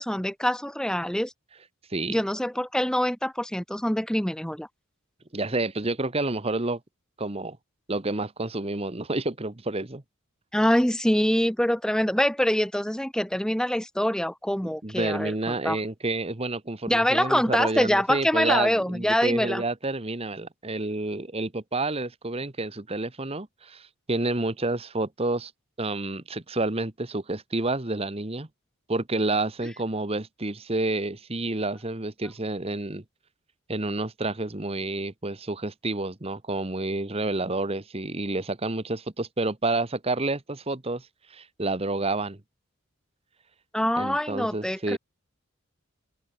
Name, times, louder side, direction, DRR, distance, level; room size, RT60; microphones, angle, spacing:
voice 1, 0.0-1.3 2.1-4.7 10.5-15.8 16.9-19.6 43.7-45.0, equal, 5° left, 0.7 m, -25 dB
voice 2, 5.3-6.8 7.2-7.6 7.9-10.0 14.8-25.5 25.8-28.5 28.9-33.0 33.7-42.4 43.9-45.0, right 2 dB, 25° right, 1.2 m, -29 dB
open air
head